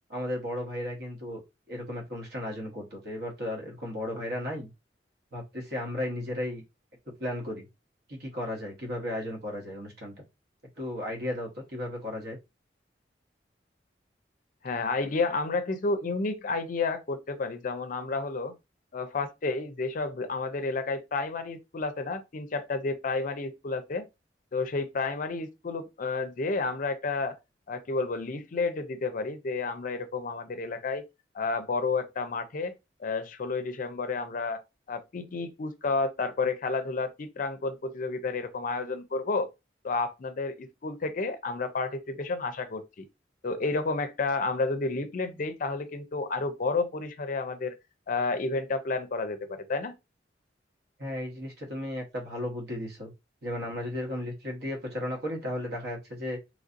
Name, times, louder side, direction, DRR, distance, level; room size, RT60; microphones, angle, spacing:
voice 1, 0.1-1.4 1.7-4.7 5.3-6.6 7.2-7.7 8.1-10.1 10.8-12.4 51.0-53.1 53.4-56.4, left 1 dB, 60° right, 1.1 m, -34 dB
voice 2, 14.6-18.5 18.9-24.1 24.5-27.4 27.7-31.0 31.3-32.7 33.0-34.6 34.9-39.5 39.8-43.1 43.4-47.7 48.1-49.9, left 3 dB, 50° left, 0.5 m, -31 dB
3.1 x 2.6 x 2.5 m
head